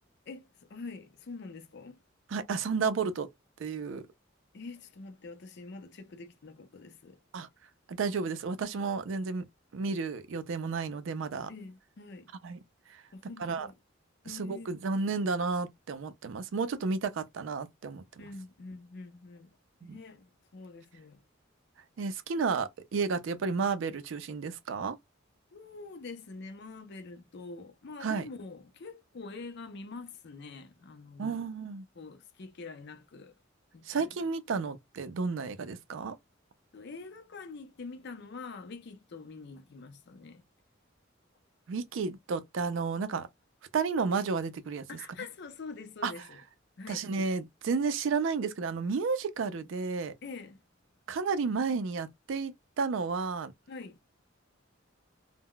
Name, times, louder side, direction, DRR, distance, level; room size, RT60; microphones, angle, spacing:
voice 1, 0.3-2.0 4.5-7.2 11.5-12.3 13.1-13.7 14.2-14.8 18.2-19.5 19.9-21.2 25.5-31.4 32.0-33.3 33.7-34.1 36.7-40.4 44.9-46.4 46.8-47.1 50.2-50.6 53.7-54.0, left 3 dB, 60° left, 0.5 m, -45 dB
voice 2, 2.3-3.3 3.6-4.0 7.3-7.5 7.9-9.5 9.7-11.5 12.4-12.6 13.4-13.7 14.3-18.0 19.8-20.0 22.0-25.0 28.0-28.3 31.2-31.8 33.9-36.2 41.7-43.3 43.7-44.9 46.0-46.1 46.9-50.1 51.1-53.5, right 4 dB, 70° right, 0.4 m, -32 dB
2.2 x 2.1 x 3.6 m
head